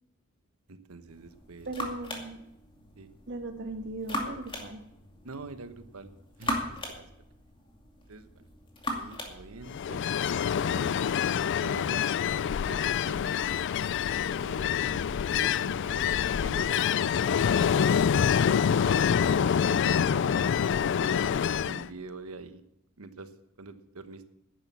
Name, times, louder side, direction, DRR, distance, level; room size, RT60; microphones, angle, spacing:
voice 1, 0.7-1.7 3.0-3.1 5.2-6.1 6.4-7.1 8.1-8.5 8.9-10.9 11.6-12.0 12.7-13.5 14.4-16.1 16.4-17.4 17.8-20.2 20.8-22.6 23.0-23.3 23.6-24.2, right 3 dB, 80° right, 10 dB, 1.1 m, -45 dB
sound 1, 1.1-11.2, left 1 dB, 25° left, 2.4 m, -40 dB
voice 2, 1.7-2.4 3.3-4.8, right 2 dB, 55° right, 5 dB, 1.8 m, -38 dB
Ocean, 9.7-21.9, left 8 dB, 55° left, 0.4 m, -26 dB
10.5 x 10.5 x 7.4 m, 0.84 s
head